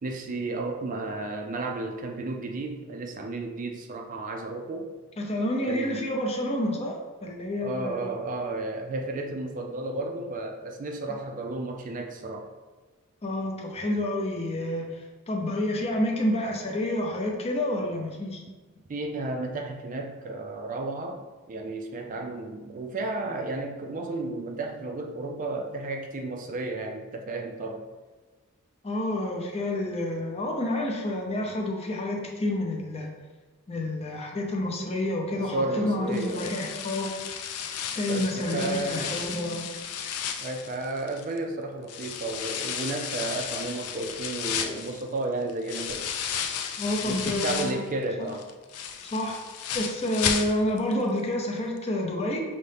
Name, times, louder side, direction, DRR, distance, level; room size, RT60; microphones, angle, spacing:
voice 1, 0.0-4.9 5.7-6.1 7.6-12.5 18.9-27.9 35.3-36.5 38.1-39.2 40.4-46.1 47.0-48.5, right 2 dB, 35° right, 3 dB, 0.4 m, -33 dB
voice 2, 5.2-8.1 13.2-18.4 28.8-33.1 33.7-37.1 37.9-39.7 46.8-47.8 48.2-48.3 49.1-49.4 49.7-52.4, left 1 dB, 30° left, 0 dB, 0.6 m, -29 dB
sound 1, 36.1-41.4 41.9-47.9 48.3-50.9 51.2-51.3 51.8-51.9, left 8 dB, 80° left, 0.4 m, -33 dB
5.3 x 2.8 x 3.3 m, 1.3 s
head